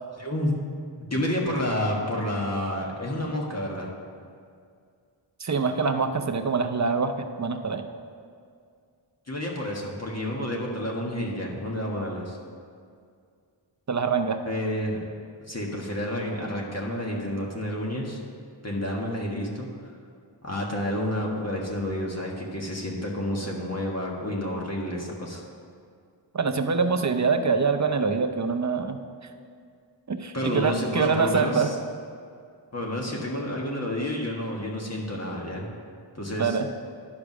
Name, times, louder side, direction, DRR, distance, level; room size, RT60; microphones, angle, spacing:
voice 1, 0.2-0.5 1.1-3.9 9.3-12.4 14.4-15.0 15.5-18.2 18.6-19.7 20.4-25.4 30.3-31.7 32.7-35.7 36.1-36.6, left 1 dB, 35° left, -2 dB, 1.5 m, -30 dB
voice 2, 5.4-7.8 13.9-14.4 26.3-29.0 30.1-31.7 36.4-36.7, right 5 dB, 35° right, 7 dB, 0.7 m, -25 dB
11.0 x 5.0 x 6.1 m, 2.3 s
wide cardioid pair, 75°, 46 cm